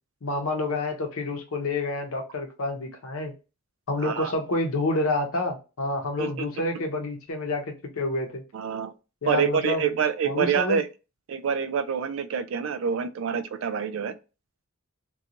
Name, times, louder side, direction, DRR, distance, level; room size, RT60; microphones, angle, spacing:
voice 1, 0.2-3.3 3.9-8.4 9.2-9.9 10.3-10.8, left 2 dB, 80° left, 0.7 m, -28 dB
voice 2, 4.0-4.3 6.2-6.3 8.5-8.9 9.3-10.9 11.3-14.1, right 7 dB, 65° right, 0.3 m, -26 dB
2.5 x 2.3 x 2.8 m
head